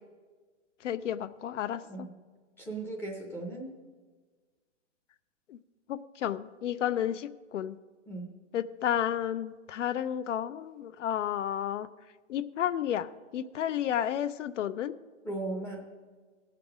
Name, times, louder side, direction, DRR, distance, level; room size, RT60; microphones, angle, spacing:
voice 1, 0.8-2.1 5.5-5.6 5.9-7.8 8.5-11.9 12.3-14.9, left 10 dB, 75° left, 15 dB, 0.6 m, -32 dB
voice 2, 2.6-3.8 8.1-8.4 15.2-15.8, right 2 dB, 5° left, 1 dB, 0.6 m, -37 dB
17.5 x 6.0 x 4.9 m, 1.4 s
hypercardioid pair, 150°, 36 cm